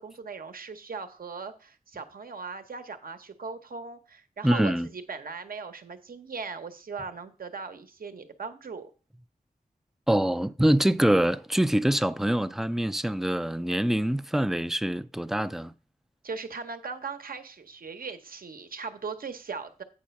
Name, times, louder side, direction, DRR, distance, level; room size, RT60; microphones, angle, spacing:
voice 1, 0.0-8.9 16.2-19.8, right 5 dB, 75° right, 0.9 m, -39 dB
voice 2, 4.4-4.9 10.1-15.7, right 1 dB, ahead, 0.3 m, -25 dB
8.6 x 4.1 x 5.8 m
wide cardioid pair, 105°, 15 cm